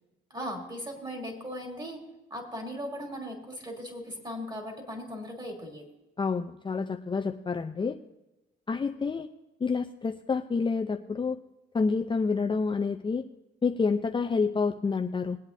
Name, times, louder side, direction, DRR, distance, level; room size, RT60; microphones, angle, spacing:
voice 1, 0.3-2.0 2.3-5.9, equal, 20° right, 1 dB, 3.4 m, -38 dB
voice 2, 6.2-8.0 8.7-9.3 9.6-11.4 11.7-13.2 13.6-15.4, left 4 dB, 25° left, 4 dB, 0.6 m, -28 dB
22.0 x 8.6 x 2.7 m, 0.98 s
cardioid pair, 90°, 20 cm